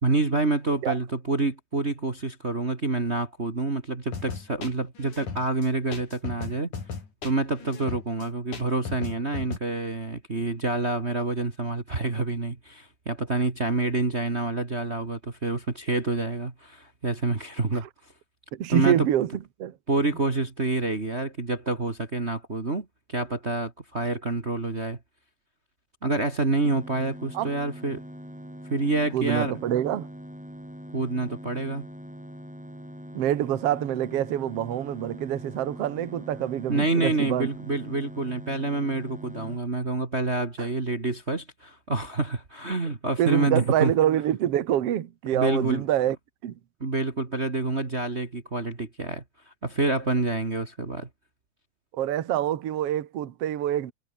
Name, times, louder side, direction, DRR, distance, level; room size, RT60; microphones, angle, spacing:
voice 1, 0.0-6.7 7.2-17.9 18.7-19.1 19.9-25.0 26.0-28.0 28.7-29.6 30.9-31.9 36.7-43.9 45.3-45.8 46.8-49.2 49.6-51.1, right 2 dB, 25° right, 2.0 m, -27 dB
sound 1, 4.1-9.6, left 5 dB, 75° left, 5.8 m, -37 dB
voice 2, 18.5-19.3 19.6-19.7 27.3-27.5 29.1-30.1 33.1-37.5 40.6-40.7 43.2-46.2 46.4-46.5 51.9-53.9, right 11 dB, 60° right, 2.2 m, -26 dB
sound 2, 26.6-39.6, equal, ahead, 7.4 m, -42 dB
omnidirectional pair, 3.5 m